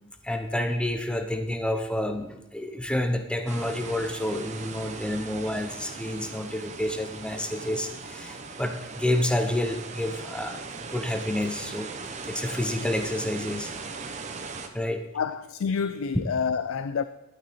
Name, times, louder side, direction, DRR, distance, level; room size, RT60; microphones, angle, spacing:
voice 1, 0.0-10.6 10.9-11.9 12.2-13.7 14.7-15.0, left 1 dB, 5° left, 0.7 m, -29 dB
sound 1, 3.5-14.7, right 4 dB, 35° right, 0.9 m, -39 dB
voice 2, 15.1-17.0, left 6 dB, 90° left, 0.4 m, -28 dB
11.5 x 9.3 x 4.2 m
head